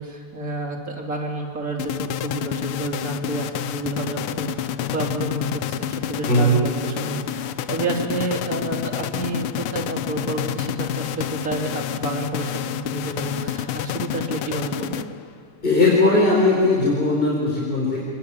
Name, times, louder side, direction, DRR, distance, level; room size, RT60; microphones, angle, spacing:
voice 1, 0.0-15.1, right 2 dB, 40° right, 0 dB, 3.7 m, -30 dB
sound 1, 1.8-15.4, left 11 dB, 85° left, 1.7 m, -29 dB
voice 2, 15.6-18.0, left 2 dB, 25° left, -3 dB, 4.5 m, -18 dB
27.0 x 20.0 x 8.9 m, 2.2 s
omnidirectional pair, 2.4 m